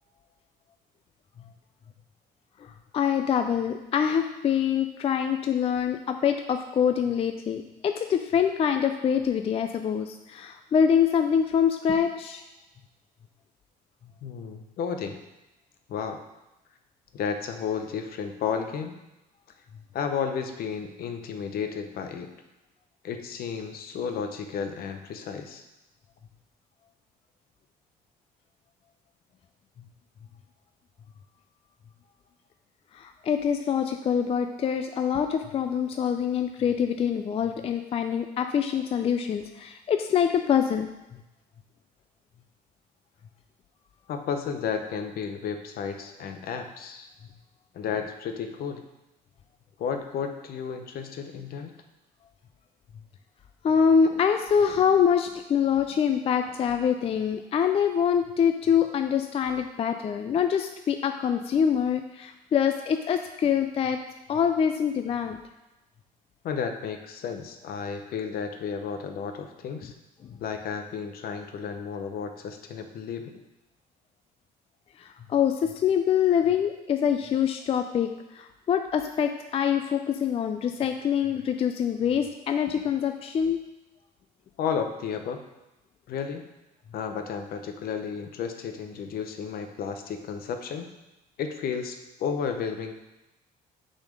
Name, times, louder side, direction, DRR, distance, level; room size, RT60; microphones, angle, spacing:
voice 1, 2.6-12.4 32.9-40.9 53.6-64.0 64.3-65.4 70.2-70.4 75.0-83.6, left 7 dB, 35° left, 7 dB, 0.4 m, -25 dB
voice 2, 14.2-15.2 15.9-16.2 17.1-18.9 19.9-22.3 23.0-25.6 44.1-47.1 47.7-48.8 49.8-51.7 66.4-69.9 70.4-73.4 84.6-85.4 86.1-86.5 86.9-90.9 91.4-92.9, left 6 dB, 65° left, 6 dB, 0.8 m, -32 dB
6.1 x 4.2 x 5.2 m, 0.98 s
cardioid pair, 110°, 17 cm